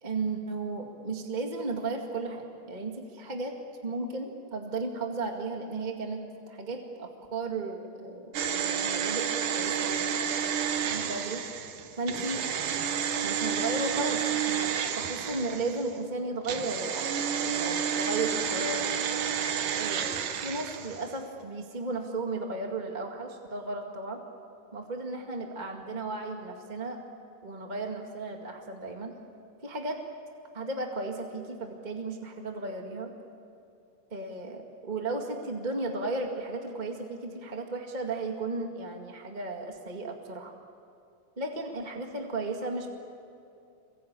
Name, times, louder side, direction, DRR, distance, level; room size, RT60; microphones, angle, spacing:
voice 1, 0.0-3.5 3.8-6.2 6.5-10.2 10.8-11.4 12.0-12.4 13.2-14.7 14.9-18.8 19.7-24.2 24.7-27.0 27.4-29.1 29.6-30.0 30.5-33.1 34.1-40.6 41.4-42.9, right 3 dB, 20° right, 2 dB, 1.4 m, -35 dB
sound 1, 8.3-15.9 16.4-21.2 21.4-21.5, right 8 dB, 80° right, 3.0 m, -30 dB
27.5 x 23.5 x 8.9 m, 2.6 s
omnidirectional pair, 3.8 m